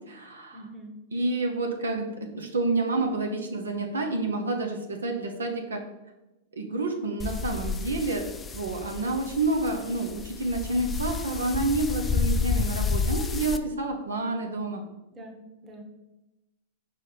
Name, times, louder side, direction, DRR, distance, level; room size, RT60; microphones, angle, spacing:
voice 1, 0.0-0.6 1.1-5.8 6.6-8.3 8.5-14.8, right 2 dB, 85° right, 3 dB, 0.8 m, -29 dB
voice 2, 0.5-1.0 15.1-15.8, right 1 dB, 25° right, 3 dB, 1.2 m, -44 dB
sound 1, 7.2-13.6, left 5 dB, 20° left, 0.4 m, -30 dB
5.2 x 4.2 x 4.9 m, 1.0 s
hypercardioid pair, 105°, 0 cm